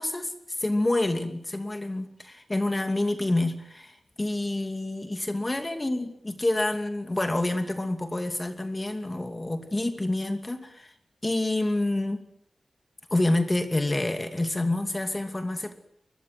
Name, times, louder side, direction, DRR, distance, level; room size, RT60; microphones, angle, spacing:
voice 1, 0.0-10.9 11.2-12.2 13.1-15.7, left 2 dB, 25° left, 7 dB, 2.6 m, -28 dB
22.5 x 21.5 x 7.9 m, 0.68 s
cardioid pair, 65°, 0 cm